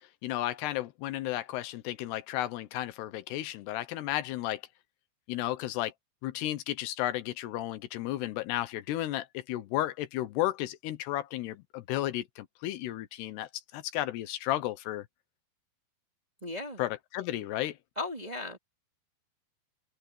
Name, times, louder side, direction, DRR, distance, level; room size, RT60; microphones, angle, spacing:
voice 1, 0.2-4.6 5.3-5.9 6.2-15.1 16.8-17.8, left 14 dB, 85° left, 3.1 m, -33 dB
voice 2, 16.4-16.8 18.0-18.6, left 2 dB, 15° right, 1.9 m, -36 dB
open air
omnidirectional pair, 4.6 m